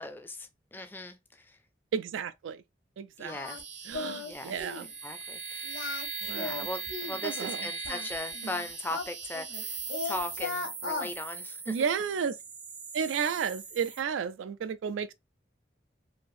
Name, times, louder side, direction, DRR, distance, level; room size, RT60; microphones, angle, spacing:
voice 1, 0.0-1.6 3.2-3.6 4.3-4.5 5.0-5.7 6.2-9.8 10.0-11.8, left 2 dB, 10° left, 0.3 m, -39 dB
voice 2, 1.9-2.6 3.0-3.4 3.9-4.9 6.2-6.7 7.2-7.7 11.7-12.4 12.9-15.1, right 7 dB, 90° right, 0.3 m, -32 dB
Singing, 3.3-3.6 3.9-4.3 4.6-4.9 5.6-7.2 7.8-9.6 9.9-11.1, left 4 dB, 90° left, 1.0 m, -37 dB
sound 1, 3.4-14.0, right 5 dB, 35° right, 0.6 m, -40 dB
3.1 x 2.6 x 2.5 m
head